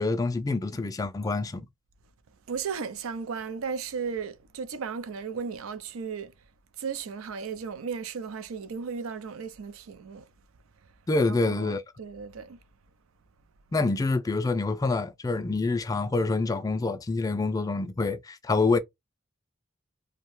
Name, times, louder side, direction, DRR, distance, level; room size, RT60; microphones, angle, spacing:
voice 1, 0.0-1.6 11.1-11.8 13.7-18.8, left 3 dB, 15° left, 0.3 m, -26 dB
voice 2, 2.5-6.3 6.8-10.3 10.8-10.9 11.3-12.6, right 6 dB, 90° right, 0.4 m, -35 dB
2.6 x 2.2 x 3.0 m
head